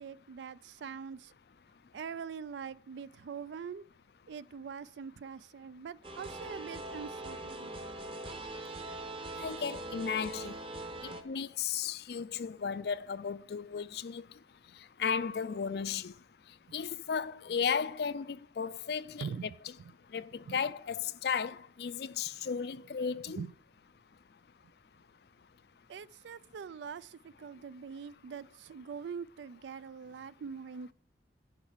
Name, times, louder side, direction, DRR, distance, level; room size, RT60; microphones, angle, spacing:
voice 1, 0.0-1.3 1.9-3.9 4.3-7.7 16.7-16.8 19.2-19.9 20.4-20.6 23.3-23.5 25.9-30.9, right 6 dB, 80° right, 0.4 m, -43 dB
sound 1, 6.0-11.2, right 2 dB, 30° right, 0.9 m, -42 dB
voice 2, 9.4-10.5 11.0-14.2 15.0-16.1 16.7-19.3 20.1-23.4, left 6 dB, 60° left, 0.4 m, -35 dB
11.0 x 5.5 x 7.3 m
head